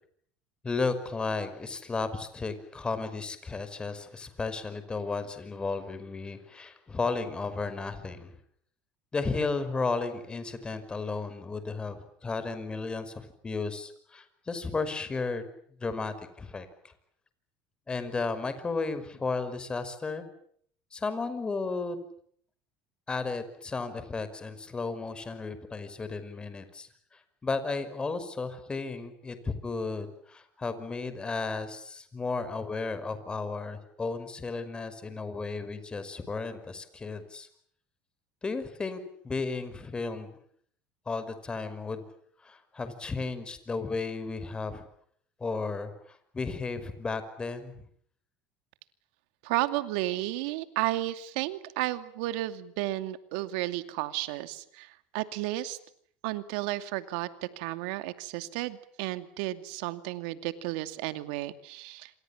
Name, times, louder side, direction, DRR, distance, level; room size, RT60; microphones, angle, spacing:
voice 1, 0.6-8.3 9.1-15.5 15.8-16.9 17.9-20.2 20.9-22.0 23.1-37.5 38.4-40.3 41.1-42.1 42.4-44.8 45.4-47.7, left 4 dB, 20° left, 12 dB, 5.4 m, -34 dB
voice 2, 49.4-55.8 56.2-62.1, right 16 dB, 80° right, 10 dB, 2.5 m, -33 dB
28.0 x 26.0 x 7.3 m, 0.63 s
supercardioid pair, 110°, 5 cm